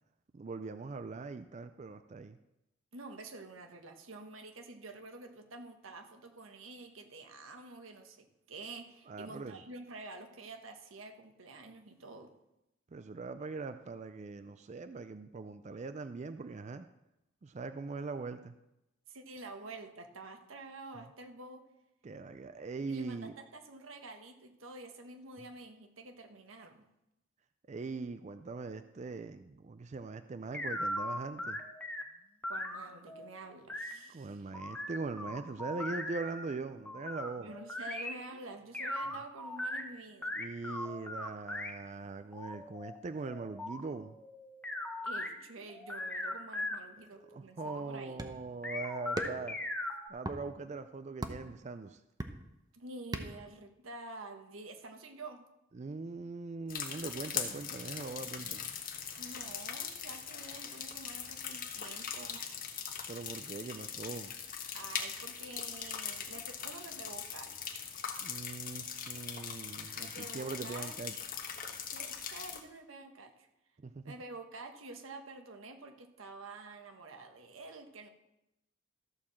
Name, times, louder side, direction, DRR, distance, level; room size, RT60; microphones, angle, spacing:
voice 1, 0.3-2.4 9.1-9.6 12.9-16.9 17.4-18.5 22.0-23.3 27.7-31.6 34.1-37.5 40.4-44.2 47.2-49.6 50.1-52.0 55.7-58.8 63.1-64.4 68.2-71.1 73.8-74.1, right 3 dB, 35° right, 10 dB, 0.4 m, -41 dB
voice 2, 2.9-12.3 19.1-21.6 22.9-26.9 32.5-34.5 37.4-40.3 45.0-48.3 52.7-55.5 59.2-62.4 64.7-67.5 70.0-71.0 71.9-73.5 74.0-78.1, right 2 dB, 90° right, 5 dB, 1.3 m, -48 dB
sound 1, 30.5-32.0 32.4-33.9 34.5-36.4 36.9-38.1 38.7-39.8 40.2-41.7 42.3-45.3 45.7-46.8 47.2-47.8 48.6-50.1, left 1 dB, 5° left, 1.0 m, -39 dB
sound 2, 48.2-48.5 49.2-49.6 50.2-50.4 51.2-51.5 52.2-52.6 53.1-53.5, right 1 dB, 20° right, 0.8 m, -38 dB
sound 3, 56.7-72.6, left 7 dB, 45° left, 1.2 m, -41 dB
14.0 x 4.8 x 7.1 m, 0.89 s
head